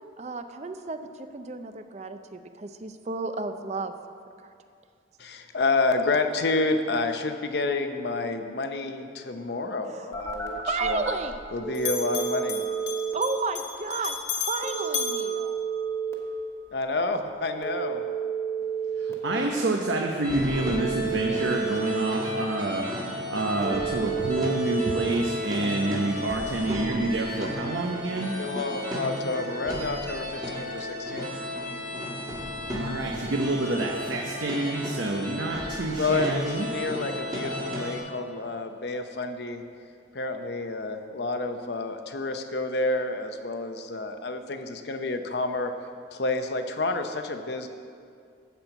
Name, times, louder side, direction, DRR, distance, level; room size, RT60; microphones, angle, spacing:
voice 1, 0.2-1.0 1.3-3.9 9.9-10.1 10.7-11.3 13.1-14.2 14.5-15.6, right 4 dB, 35° right, 8 dB, 0.5 m, -32 dB
voice 2, 5.2-11.0 11.5-12.6 16.7-18.1 28.3-31.3 36.0-39.6 40.1-45.7 46.1-47.7, left 3 dB, 60° left, 7 dB, 0.7 m, -29 dB
Bell, 10.1-11.5 11.7-16.2, left 5 dB, 90° left, 1.5 m, -35 dB
Telephone, 10.1-11.1 11.6-13.1 14.6-16.1 17.6-19.1 20.6-22.1 23.6-25.1, right 7 dB, 15° left, 1.2 m, -31 dB
voice 3, 19.0-28.3 32.7-36.7, right 2 dB, 85° right, 1 dB, 0.8 m, -28 dB
sound 1, 20.2-38.0, left 1 dB, 20° right, 1.5 m, -34 dB
13.0 x 4.5 x 8.0 m, 2.4 s
head